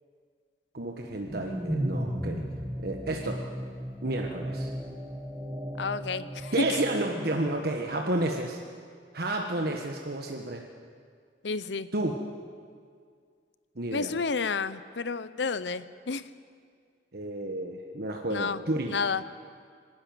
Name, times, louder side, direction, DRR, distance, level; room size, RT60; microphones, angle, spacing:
voice 1, 0.7-2.4 2.8-3.4 4.0-4.7 6.5-8.6 9.1-10.6 11.9-12.2 13.8-14.1 17.1-19.0, right 1 dB, 60° right, 2 dB, 1.4 m, -31 dB
sound 1, 1.0-7.3, equal, 5° right, 1.6 m, -35 dB
voice 2, 5.8-6.8 11.4-11.9 13.9-16.2 18.3-18.6 18.9-19.2, left 4 dB, 75° left, 15 dB, 0.7 m, -30 dB
24.5 x 12.5 x 9.3 m, 2.1 s
head